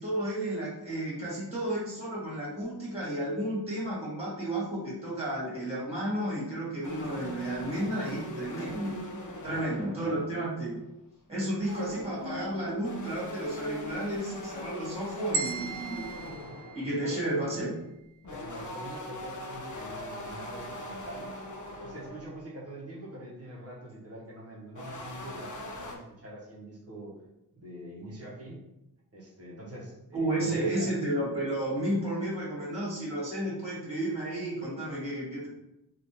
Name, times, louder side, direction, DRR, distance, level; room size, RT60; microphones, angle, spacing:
voice 1, 0.0-9.0 9.4-10.8 11.3-16.1 16.7-17.7 30.1-35.5, right 1 dB, 15° right, -7 dB, 1.5 m, -32 dB
sound 1, 6.8-10.7 11.4-17.0 18.2-22.5 24.7-26.0, left 1 dB, 50° left, 0.5 m, -41 dB
voice 2, 9.4-10.3 16.8-17.6 18.3-21.3 21.6-27.2 27.5-28.6 29.1-30.9, right 1 dB, 35° right, -5 dB, 0.9 m, -44 dB
sound 2, 15.3-17.5, right 5 dB, 80° right, 0.5 m, -36 dB
3.3 x 2.5 x 2.8 m, 0.91 s
wide cardioid pair, 120°, 40 cm